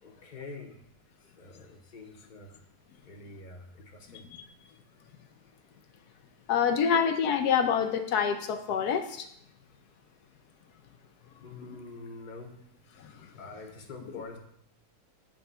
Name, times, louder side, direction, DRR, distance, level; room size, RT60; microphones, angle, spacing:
voice 1, 0.0-0.8 1.4-2.5 3.0-4.3 6.9-7.0 11.4-12.6 13.4-14.4, left 3 dB, 35° left, 2 dB, 0.9 m, -45 dB
voice 2, 4.1-4.4 6.5-9.3 11.7-11.8 13.0-13.3, left 7 dB, 70° left, 6 dB, 1.1 m, -27 dB
8.6 x 3.4 x 5.5 m, 0.70 s
omnidirectional pair, 1.8 m